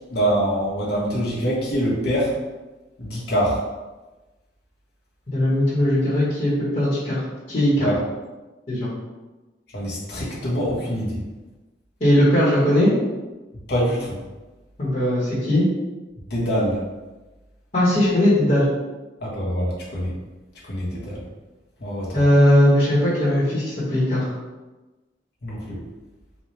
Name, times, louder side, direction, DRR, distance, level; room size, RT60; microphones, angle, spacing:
voice 1, 0.1-2.3 3.0-3.6 7.8-8.0 9.7-11.2 13.7-14.2 16.3-16.8 19.2-20.1 20.7-21.2 21.8-22.2 25.4-25.8, equal, 65° left, -5 dB, 1.1 m, -24 dB
voice 2, 5.3-7.2 7.5-7.9 8.7-8.9 12.0-12.9 14.8-15.7 17.7-18.6 22.1-24.3, left 1 dB, 40° left, -10 dB, 1.2 m, -19 dB
4.1 x 2.3 x 3.2 m, 1.1 s
head